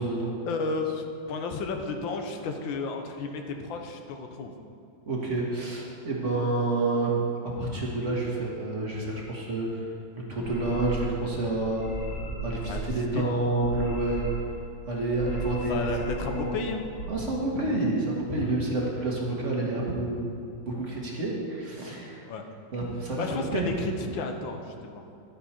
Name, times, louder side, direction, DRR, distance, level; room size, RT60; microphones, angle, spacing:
voice 1, 0.4-4.5 12.7-13.3 15.7-16.9 22.3-22.4 23.2-25.1, left 4 dB, 80° left, 5 dB, 1.6 m, -33 dB
voice 2, 5.1-7.1 7.5-9.9 10.3-11.8 12.4-14.3 14.9-15.8 16.2-16.5 17.1-20.3 20.7-22.3 22.7-23.7, right 2 dB, 40° right, -3 dB, 1.7 m, -29 dB
sound 1, 10.3-11.2 11.5-12.9 13.5-14.6 15.1-16.5 16.8-17.1, right 2 dB, 50° left, 2.8 m, -36 dB
11.5 x 9.2 x 4.3 m, 2.5 s
omnidirectional pair, 2.1 m